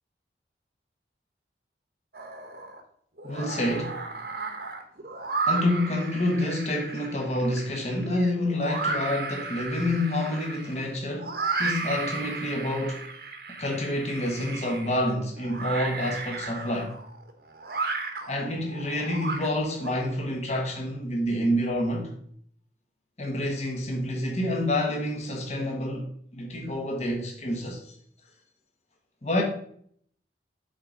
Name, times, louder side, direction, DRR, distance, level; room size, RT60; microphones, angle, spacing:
sound 1, 2.1-2.8 3.2-19.9, right 4 dB, 55° right, 1.1 m, -34 dB
voice 1, 3.2-4.0 5.5-11.3 11.6-13.0 13.6-16.9 18.3-22.1 23.2-26.1 26.3-27.9 29.2-29.4, left 1 dB, 35° left, 1.3 m, -28 dB
7.8 x 4.0 x 5.0 m
head